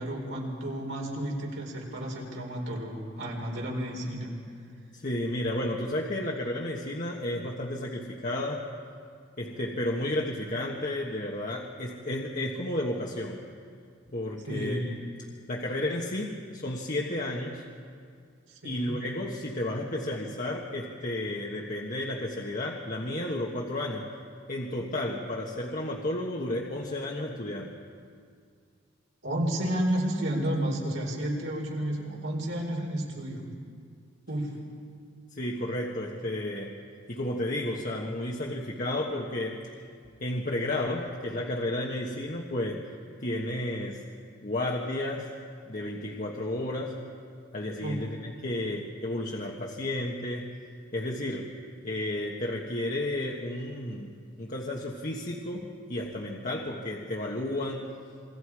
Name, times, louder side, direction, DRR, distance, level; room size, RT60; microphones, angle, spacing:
voice 1, 0.0-4.3 14.5-14.8 18.5-19.0 29.2-33.4 34.3-34.5 47.8-48.0, right 1 dB, 75° right, -1 dB, 4.5 m, -31 dB
voice 2, 4.9-8.7 9.4-13.4 14.1-15.0 15.5-17.6 18.6-24.1 24.5-27.8 35.3-36.8 37.1-39.6 40.2-42.9 43.2-44.0 44.4-45.3 45.7-47.0 47.5-50.5 50.9-51.5 51.8-57.9, left 1 dB, 45° left, -1 dB, 1.4 m, -32 dB
27.5 x 23.0 x 4.9 m, 2.2 s
head